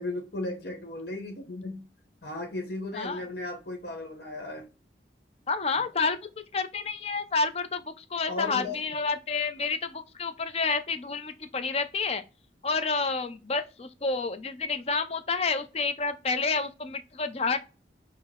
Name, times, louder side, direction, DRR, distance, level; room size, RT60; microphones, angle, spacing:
voice 1, 0.0-1.8 2.2-4.6 8.3-8.8, left 2 dB, 65° left, 1.0 m, -35 dB
voice 2, 5.5-6.2 6.5-12.2 12.6-17.6, left 4 dB, 35° left, 0.5 m, -29 dB
5.9 x 2.0 x 3.6 m
head